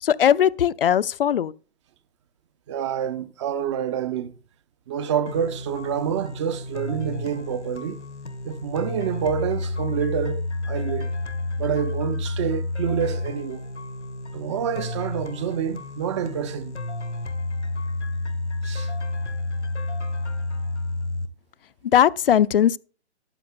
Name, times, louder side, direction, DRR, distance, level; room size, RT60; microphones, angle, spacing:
voice 1, 0.0-1.5 21.9-22.8, left 9 dB, 55° left, 0.5 m, -19 dB
voice 2, 2.7-4.3 4.9-8.0 8.4-11.1 11.6-13.6 14.3-16.7 18.6-18.9, right 8 dB, 25° right, 0.6 m, -27 dB
sound 1, 5.3-21.3, left 2 dB, 90° left, 1.2 m, -30 dB
14.0 x 11.5 x 2.3 m
figure-of-eight pair, 130°, 34 cm